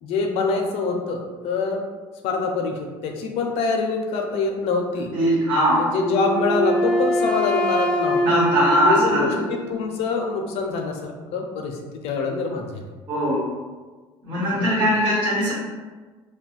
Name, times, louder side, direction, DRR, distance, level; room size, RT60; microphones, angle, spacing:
voice 1, 0.0-1.8 2.2-5.1 5.7-12.8 14.5-14.7, left 4 dB, 70° left, 2 dB, 0.5 m, -25 dB
voice 2, 5.1-5.8 8.2-9.3 13.1-13.4 14.2-15.5, equal, 55° right, -8 dB, 1.2 m, -20 dB
Wind instrument woodwind instrument, 6.0-9.9, equal, 10° left, 0.3 m, -24 dB
2.4 x 2.1 x 3.8 m, 1.4 s
cardioid pair, 145°, 11 cm